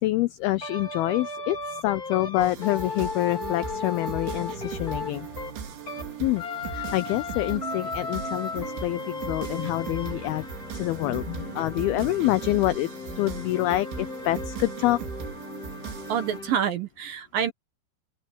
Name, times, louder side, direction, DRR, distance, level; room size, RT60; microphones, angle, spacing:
voice 1, 0.0-5.3 6.2-6.4 6.7-10.5 10.7-15.0, left 16 dB, 85° left, 2.2 m, -26 dB
sound 1, 0.6-6.1 6.4-16.6, left 4 dB, 25° left, 3.0 m, -36 dB
sound 2, 2.4-16.4, right 7 dB, 85° right, 5.4 m, -38 dB
sound 3, 4.3-11.1, left 4 dB, 65° left, 7.6 m, -53 dB
voice 2, 16.1-17.5, right 9 dB, 65° right, 2.5 m, -27 dB
open air
omnidirectional pair, 5.2 m